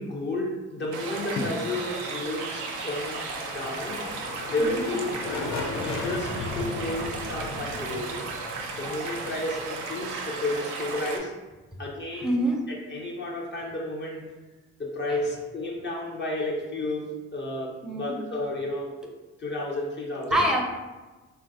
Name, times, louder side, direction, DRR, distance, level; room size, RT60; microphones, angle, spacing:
voice 1, 0.0-4.0 4.5-8.1 8.8-11.3 11.8-12.4 12.7-14.2 14.8-19.1 19.4-20.4, left 1 dB, 40° left, -2 dB, 0.7 m, -32 dB
sound 1, 0.9-11.2, right 4 dB, 90° right, 0.5 m, -35 dB
sound 2, 2.4-10.1, left 3 dB, 70° left, 0.5 m, -37 dB
voice 2, 12.2-12.6 15.1-15.2 17.8-18.2 20.3-20.6, right 1 dB, ahead, 0 dB, 0.6 m, -25 dB
3.1 x 2.4 x 2.6 m, 1.2 s
supercardioid pair, 60°, 29 cm